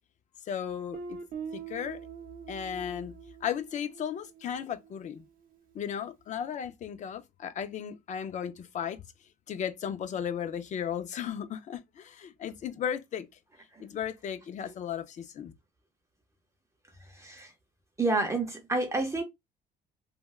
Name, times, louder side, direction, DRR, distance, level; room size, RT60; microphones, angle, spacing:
voice 1, 0.4-1.2 1.5-2.0 2.5-3.1 3.4-5.2 5.7-9.0 9.5-13.3 13.8-15.5, left 8 dB, 45° left, 0.5 m, -35 dB
Guitar, 0.9-5.6, right 6 dB, 60° right, 0.6 m, -44 dB
voice 2, 17.1-17.5 18.0-19.2, right 2 dB, 15° right, 0.6 m, -29 dB
3.3 x 2.2 x 2.3 m
cardioid pair, 110°, 17 cm